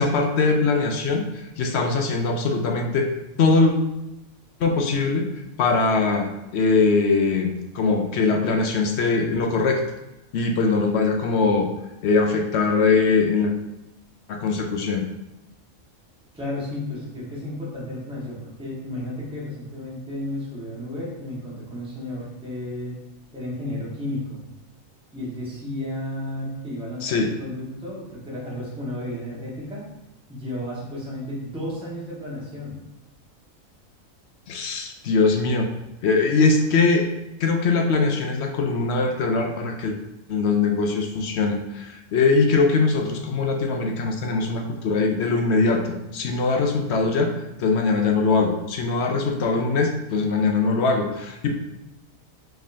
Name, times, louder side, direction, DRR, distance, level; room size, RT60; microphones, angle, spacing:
voice 1, 0.0-3.1 3.4-3.7 4.6-5.2 5.6-9.8 10.3-11.7 12.0-13.5 14.3-15.0 27.0-27.3 34.5-35.7 36.0-37.1 37.4-39.9 40.3-51.5, left 4 dB, 65° left, 3 dB, 0.7 m, -21 dB
voice 2, 16.3-23.0 23.3-24.4 25.1-29.8 30.3-32.8, left 1 dB, 5° right, -7 dB, 1.4 m, -33 dB
5.1 x 3.7 x 2.7 m, 0.92 s
omnidirectional pair, 1.4 m